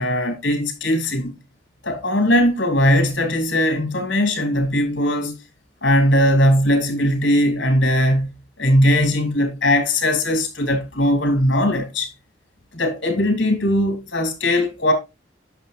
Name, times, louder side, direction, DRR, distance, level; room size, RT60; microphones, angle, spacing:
voice 1, 0.0-1.3 1.8-5.4 5.8-8.3 8.6-12.1 12.7-14.9, left 1 dB, 70° left, 3.6 m, -19 dB
10.5 x 6.9 x 2.7 m
head